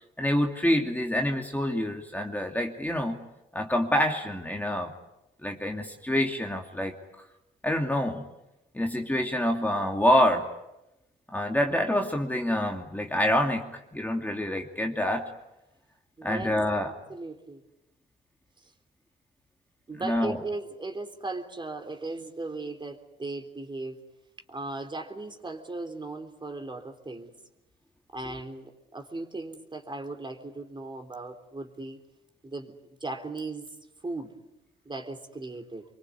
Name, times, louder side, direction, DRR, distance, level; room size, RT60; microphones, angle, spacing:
voice 1, 0.2-3.2 3.5-4.9 5.4-7.0 7.6-8.2 8.7-10.5 11.3-15.3 16.2-16.9 20.0-20.4 28.3-28.4, left 1 dB, 10° left, 2 dB, 2.7 m, -26 dB
voice 2, 16.2-16.5 16.8-17.6 18.6-18.7 19.9-24.0 24.5-27.3 28.1-32.0 32.4-32.7 33.0-33.8 34.0-34.3 34.9-35.9, right 2 dB, 25° right, 6 dB, 3.6 m, -37 dB
25.5 x 24.0 x 9.6 m, 0.94 s
cardioid pair, 90°, 20 cm